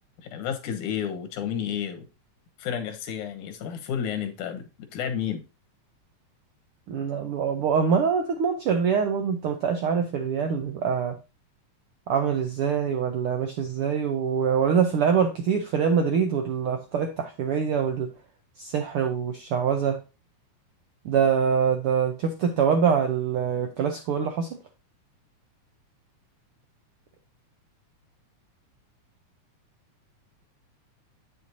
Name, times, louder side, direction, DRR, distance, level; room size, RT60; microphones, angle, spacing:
voice 1, 0.2-2.1 2.6-5.4, left 8 dB, 90° left, 2.6 m, -31 dB
voice 2, 6.9-11.2 12.1-18.1 18.6-20.0 21.0-24.5, right 7 dB, 75° right, 1.2 m, -24 dB
8.6 x 6.3 x 2.7 m
omnidirectional pair, 3.5 m